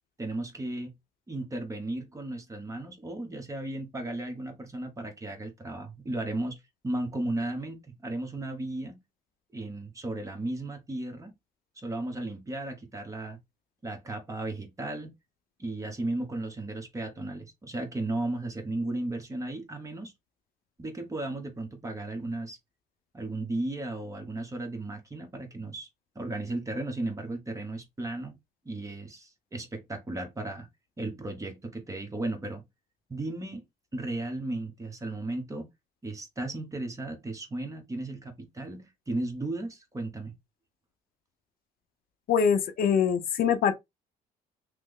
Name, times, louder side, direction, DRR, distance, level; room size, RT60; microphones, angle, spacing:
voice 1, 0.2-0.9 1.3-9.0 9.5-11.3 11.8-13.4 13.8-15.1 15.6-20.1 20.8-22.6 23.1-25.9 26.1-28.4 28.6-30.7 31.0-32.7 33.1-33.6 33.9-35.7 36.0-40.3, right 2 dB, 20° right, 1.0 m, -35 dB
voice 2, 42.3-43.7, left 7 dB, 60° left, 0.6 m, -23 dB
3.1 x 2.1 x 3.6 m
cardioid pair, 110°, 17 cm